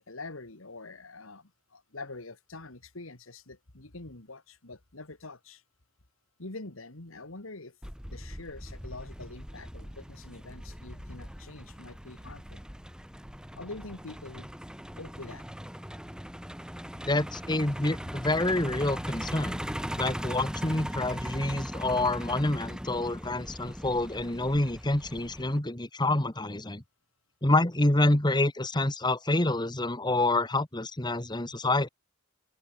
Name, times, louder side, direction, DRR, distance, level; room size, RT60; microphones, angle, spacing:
voice 1, 0.0-5.6 6.4-7.8 8.1-12.6 13.6-14.5 15.0-15.5, left 2 dB, 90° left, 2.4 m, -45 dB
Truck, 7.8-25.6, equal, 5° right, 3.3 m, -39 dB
voice 2, 17.1-19.6 20.0-26.8 27.4-31.9, left 2 dB, 20° left, 1.7 m, -27 dB
open air
head